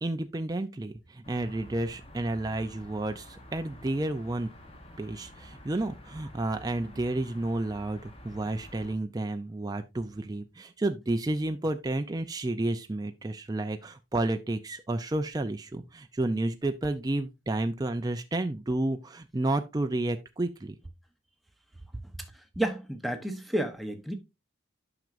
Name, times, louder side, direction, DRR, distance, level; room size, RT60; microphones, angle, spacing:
voice 1, 0.0-4.5 5.0-20.8, right 2 dB, 20° right, 0.4 m, -31 dB
sound 1, 1.2-8.9, left 1 dB, 25° left, 1.0 m, -49 dB
voice 2, 22.3-24.1, right 1 dB, ahead, 0.8 m, -31 dB
9.1 x 5.9 x 2.5 m
head